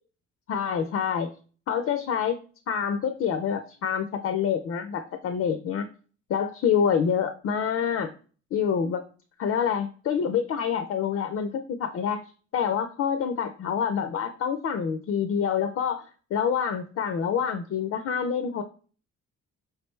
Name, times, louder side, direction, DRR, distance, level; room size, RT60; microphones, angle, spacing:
voice 1, 0.5-1.3 1.7-2.4 2.7-5.9 6.3-8.1 8.5-9.0 9.4-12.2 12.5-16.0 16.3-18.6, left 7 dB, 50° left, 8 dB, 0.5 m, -27 dB
4.7 x 3.3 x 3.1 m, 0.39 s
cardioid pair, 115°, 29 cm